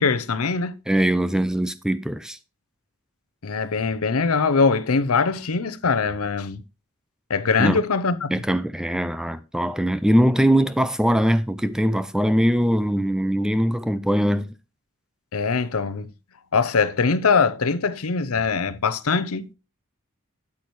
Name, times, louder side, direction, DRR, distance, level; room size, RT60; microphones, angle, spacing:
voice 1, 0.0-0.8 3.4-6.6 7.3-8.4 15.3-16.1 16.5-19.5, left 4 dB, 75° left, 0.7 m, -22 dB
voice 2, 0.9-2.4 7.6-7.8 8.3-14.5, equal, 5° right, 0.4 m, -21 dB
8.5 x 8.5 x 3.1 m
head